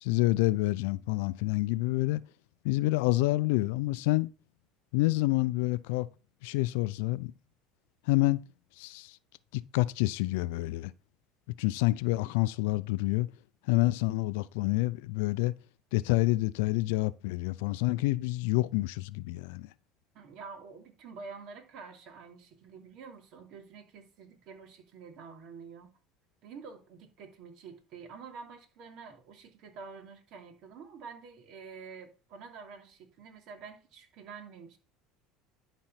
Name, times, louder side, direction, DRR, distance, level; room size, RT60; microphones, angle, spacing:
voice 1, 0.0-2.2 2.6-4.3 4.9-6.1 6.4-7.3 8.1-8.4 8.8-9.2 9.5-10.9 11.6-13.3 13.7-15.5 15.9-19.7, left 19 dB, 80° left, 0.5 m, -28 dB
voice 2, 20.1-25.9 26.4-34.8, right 5 dB, 60° right, 2.9 m, -48 dB
11.5 x 4.4 x 5.8 m
supercardioid pair, 105°, 0 cm